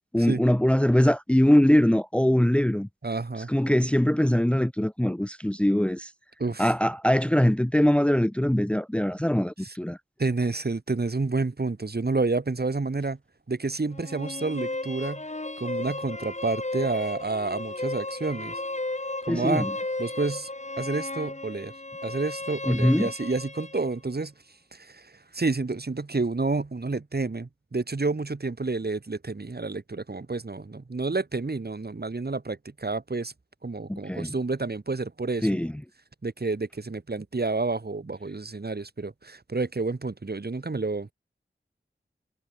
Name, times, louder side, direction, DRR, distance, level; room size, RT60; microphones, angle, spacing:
voice 1, 0.1-2.9 3.5-6.1 6.6-10.0 19.3-19.7 22.7-23.1 33.9-34.3 35.4-35.7, equal, 5° left, 0.8 m, -22 dB
voice 2, 3.0-3.5 6.4-6.7 9.6-9.7 10.2-13.2 13.5-15.2 15.6-18.6 19.3-19.7 20.0-20.5 20.8-21.7 22.0-24.3 24.7-33.3 33.6-35.5 36.2-41.1, right 3 dB, 50° right, 3.3 m, -29 dB
sound 1, 13.9-23.9, left 2 dB, 35° left, 5.9 m, -34 dB
wide cardioid pair, 60°, 20 cm